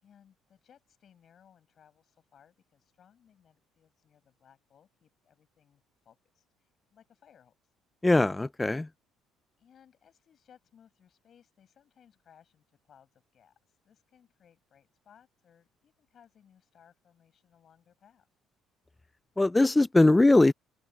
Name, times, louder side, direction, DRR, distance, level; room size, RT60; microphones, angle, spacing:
voice 1, 0.0-7.7 9.6-18.3, left 8 dB, 35° left, 7.8 m, -62 dB
voice 2, 8.0-8.9 19.4-20.5, left 2 dB, 10° left, 0.4 m, -21 dB
open air
cardioid pair, 160°, 0 cm